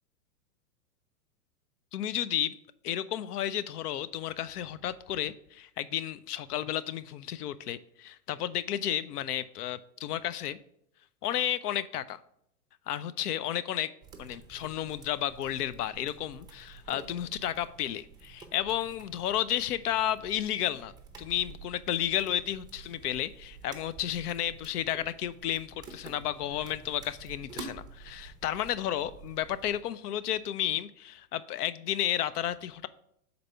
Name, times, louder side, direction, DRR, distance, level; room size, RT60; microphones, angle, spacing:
voice 1, 1.9-2.5 2.8-10.6 11.2-12.2 12.9-13.9 14.2-20.9 21.2-32.9, left 11 dB, 75° left, 16 dB, 0.6 m, -32 dB
sound 1, 14.0-29.8, right 4 dB, 10° right, 0.6 m, -50 dB
6.5 x 4.1 x 4.4 m, 0.73 s
hypercardioid pair, 120°, 46 cm